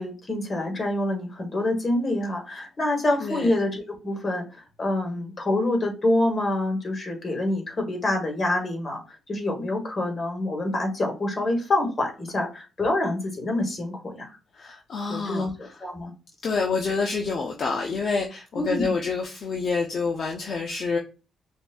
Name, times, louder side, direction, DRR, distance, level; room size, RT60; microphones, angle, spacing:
voice 1, 0.0-14.4 15.1-16.1 18.5-18.9, left 1 dB, 35° left, 2 dB, 1.8 m, -26 dB
voice 2, 3.2-3.5 14.5-15.8 16.4-21.0, left 4 dB, 55° left, 2 dB, 0.7 m, -28 dB
5.8 x 2.6 x 2.3 m, 0.32 s
cardioid pair, 90°, 0 cm